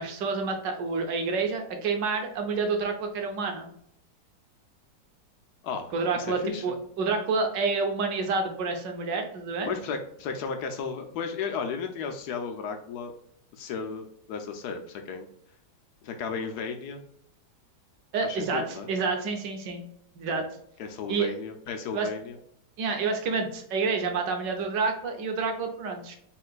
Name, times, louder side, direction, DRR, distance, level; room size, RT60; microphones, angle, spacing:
voice 1, 0.0-3.7 5.9-9.7 18.1-19.8 20.2-20.4 21.1-21.3 21.9-22.1 22.8-26.2, right 4 dB, 80° right, 4 dB, 1.5 m, -28 dB
voice 2, 5.6-6.6 9.6-13.1 13.6-15.3 16.0-17.0 18.2-18.9 20.3-20.5 20.8-22.4, left 5 dB, 70° left, 5 dB, 1.1 m, -34 dB
4.2 x 3.8 x 2.3 m, 0.72 s
omnidirectional pair, 2.0 m